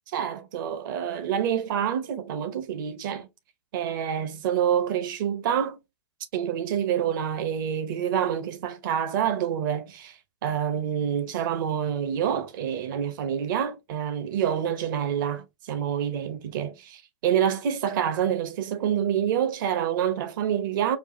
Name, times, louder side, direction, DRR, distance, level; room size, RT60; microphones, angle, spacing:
voice 1, 0.1-3.3 3.7-5.8 6.3-10.2 10.4-21.0, right 9 dB, 45° right, 0.8 m, -27 dB
4.6 x 2.3 x 2.6 m
hypercardioid pair, 125°, 14 cm